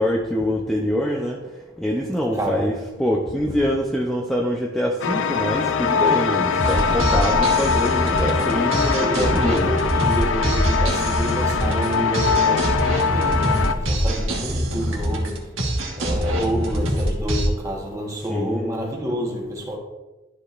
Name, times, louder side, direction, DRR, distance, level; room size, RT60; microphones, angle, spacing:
voice 1, 0.0-1.4 1.8-9.7 18.3-18.8, equal, ahead, 0.6 m, -24 dB
voice 2, 2.3-2.8 8.1-8.5 9.0-15.5 16.0-19.8, equal, 15° right, 1.3 m, -28 dB
sound 1, 5.0-13.7, left 5 dB, 75° left, 0.5 m, -22 dB
sound 2, 6.6-17.5, equal, 85° right, 1.6 m, -24 dB
12.5 x 5.0 x 2.5 m
head